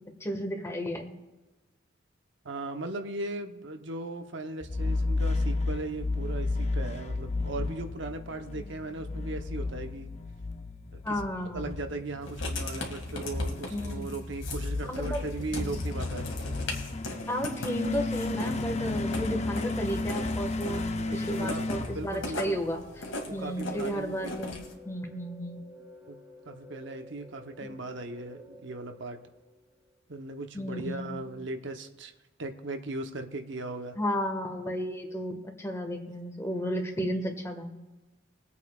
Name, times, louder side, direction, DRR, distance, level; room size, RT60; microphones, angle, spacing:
voice 1, 0.2-1.1 8.6-8.7 11.0-11.8 13.7-14.1 14.9-15.3 15.5-15.8 17.3-20.8 21.1-22.8 23.3-25.6 27.6-27.8 30.5-31.2 34.0-37.7, equal, 15° left, 3 dB, 1.6 m, -33 dB
voice 2, 2.4-10.1 11.1-11.2 11.5-16.3 20.6-22.6 23.3-24.3 26.1-26.2 26.5-29.2 30.1-32.1 32.4-33.9, right 2 dB, 65° right, 6 dB, 0.9 m, -38 dB
sound 1, 4.6-22.8, left 2 dB, 35° left, 0.6 m, -33 dB
Writing, 12.2-24.7, left 2 dB, 75° left, 2.2 m, -40 dB
sound 2, 22.0-30.0, equal, 10° right, 1.3 m, -51 dB
23.0 x 8.4 x 2.4 m, 1.2 s
head